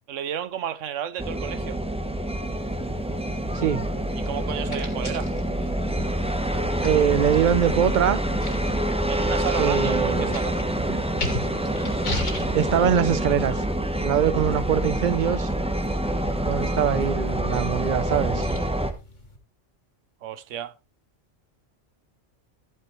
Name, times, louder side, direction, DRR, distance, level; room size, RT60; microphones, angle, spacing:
voice 1, 0.1-1.8 4.2-5.3 9.0-10.6 20.2-20.7, right 10 dB, 80° right, 1.1 m, -32 dB
sound 1, 1.2-18.9, right 1 dB, 5° right, 0.9 m, -26 dB
sound 2, 2.4-19.4, left 2 dB, 75° left, 2.7 m, -39 dB
voice 2, 3.5-3.9 6.8-8.2 9.6-10.4 10.8-11.0 12.5-13.6 14.0-15.5 16.5-18.5, right 9 dB, 45° right, 0.7 m, -23 dB
13.5 x 9.3 x 3.2 m
omnidirectional pair, 1.3 m